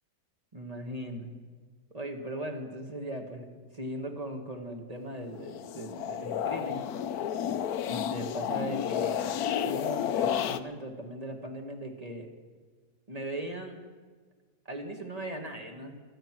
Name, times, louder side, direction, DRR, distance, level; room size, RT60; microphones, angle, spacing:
voice 1, 0.5-1.3 1.9-3.5 3.7-6.9 7.8-9.2 9.6-12.3 13.1-13.8 14.6-16.0, right 1 dB, 25° right, 3 dB, 1.7 m, -38 dB
sound 1, 5.4-10.6, left 9 dB, 75° left, 1.2 m, -31 dB
24.5 x 8.9 x 6.1 m, 1.5 s
omnidirectional pair, 1.7 m